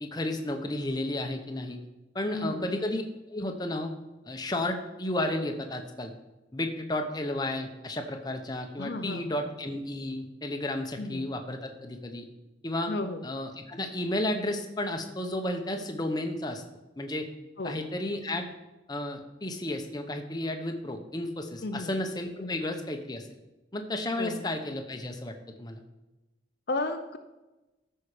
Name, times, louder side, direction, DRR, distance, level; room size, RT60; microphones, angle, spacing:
voice 1, 0.0-1.8 2.1-3.0 3.3-3.9 4.2-6.1 6.5-12.3 12.6-12.9 13.2-16.6 17.0-17.3 17.6-18.5 18.9-23.3 23.7-25.8, left 1 dB, 20° left, 5 dB, 0.9 m, -32 dB
voice 2, 2.3-2.7 8.8-9.4 11.0-11.3 12.9-13.2 17.6-17.8 21.6-21.9 22.4-22.6 24.2-24.4 26.7-27.2, left 2 dB, 55° left, 7 dB, 0.6 m, -33 dB
13.0 x 5.6 x 5.0 m, 1.0 s
head